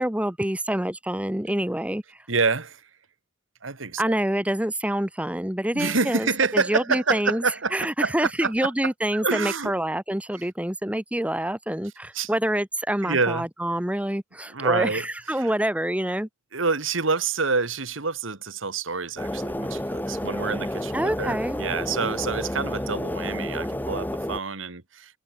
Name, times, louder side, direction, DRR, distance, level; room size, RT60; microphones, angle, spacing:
voice 1, 0.0-2.0 4.0-7.4 7.7-16.3 20.9-21.6, right 1 dB, 5° right, 1.1 m, -26 dB
voice 2, 2.3-2.9 3.6-4.2 5.7-9.7 10.3-10.4 12.1-12.3 13.0-13.5 14.5-15.1 15.3-15.5 16.5-25.2, right 4 dB, 90° right, 2.2 m, -27 dB
sound 1, 19.2-24.4, left 1 dB, 10° left, 1.3 m, -30 dB
head